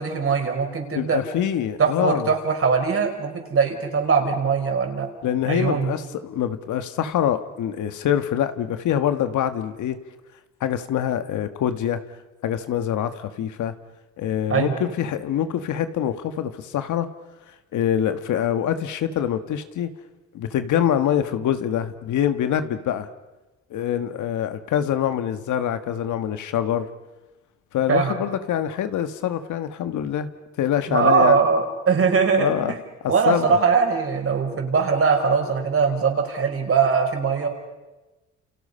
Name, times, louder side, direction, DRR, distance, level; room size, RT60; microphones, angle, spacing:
voice 1, 0.0-1.2 1.8-5.1 5.5-5.9 14.5-14.8 27.9-28.2 30.9-32.6 33.1-37.5, right 5 dB, 45° right, 3 dB, 5.4 m, -21 dB
voice 2, 0.9-2.3 5.2-10.0 10.6-12.0 12.4-13.7 14.2-17.1 17.5-19.9 20.3-23.1 23.7-26.9 27.7-30.3 30.6-31.4 32.4-32.7 33.0-33.6, left 10 dB, 75° left, 10 dB, 1.6 m, -25 dB
29.5 x 29.0 x 5.6 m, 1.1 s
cardioid pair, 90°, 30 cm